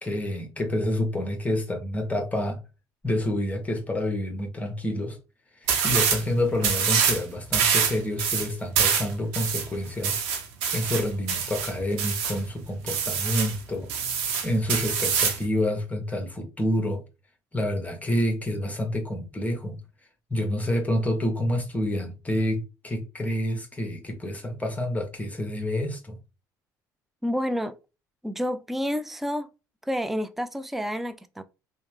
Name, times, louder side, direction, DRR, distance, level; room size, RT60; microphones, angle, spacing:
voice 1, 0.0-2.6 3.0-5.2 5.6-10.2 10.7-13.9 14.4-17.0 17.5-19.8 20.3-26.2, left 1 dB, 15° left, 1.2 m, -28 dB
sound 1, 5.7-6.2 6.6-7.2 7.5-12.4 12.9-13.6 13.9-15.4, right 7 dB, 70° right, 0.8 m, -25 dB
voice 2, 27.2-27.8 28.2-29.5 29.9-31.4, equal, ahead, 0.3 m, -29 dB
3.1 x 2.0 x 3.1 m
hypercardioid pair, 60°, 10 cm